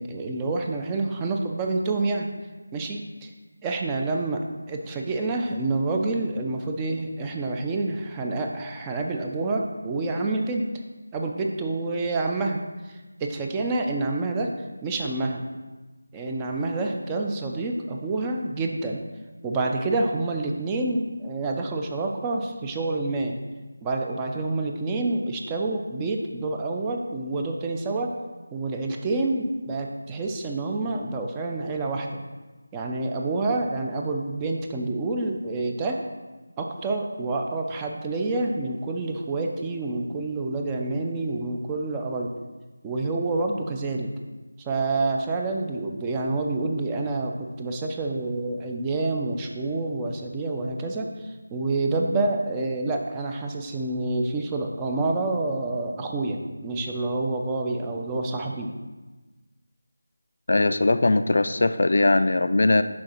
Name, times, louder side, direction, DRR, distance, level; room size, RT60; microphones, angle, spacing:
voice 1, 0.0-2.3 2.7-3.3 3.6-10.6 11.1-14.5 14.8-15.4 16.1-19.0 19.4-23.4 23.8-28.1 28.5-32.2 32.7-36.0 36.6-42.3 42.8-44.1 44.6-58.7, right 2 dB, 10° right, 1 dB, 0.4 m, -28 dB
voice 2, 60.5-62.8, left 2 dB, 55° left, 11 dB, 0.3 m, -20 dB
6.3 x 4.6 x 4.3 m, 1.2 s
figure-of-eight pair, 170°, 0 cm